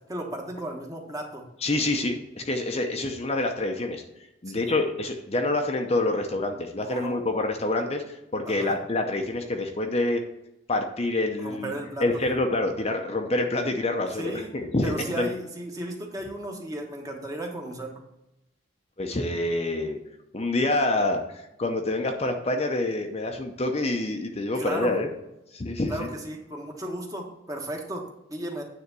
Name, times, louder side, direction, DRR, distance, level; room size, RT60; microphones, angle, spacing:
voice 1, 0.1-1.5 4.5-4.7 6.9-7.2 8.4-8.8 11.4-12.2 14.1-14.5 14.8-18.0 24.5-25.0 25.9-28.6, right 1 dB, 20° right, 1 dB, 1.2 m, -35 dB
voice 2, 1.6-4.0 4.4-10.2 10.7-11.7 12.0-15.3 19.0-20.0 20.3-25.1 25.5-26.1, left 2 dB, 30° left, 4 dB, 0.7 m, -27 dB
9.5 x 3.5 x 6.7 m, 0.89 s
head